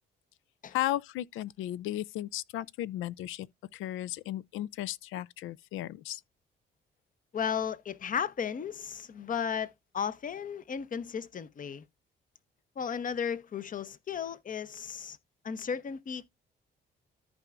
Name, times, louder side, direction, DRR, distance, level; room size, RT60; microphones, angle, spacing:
voice 1, 0.7-3.5 3.7-6.2, left 14 dB, 85° left, 0.4 m, -35 dB
voice 2, 7.3-11.8 12.8-15.2 15.4-16.3, left 7 dB, 40° left, 0.7 m, -34 dB
14.0 x 4.7 x 2.4 m
cardioid pair, 90°, 20 cm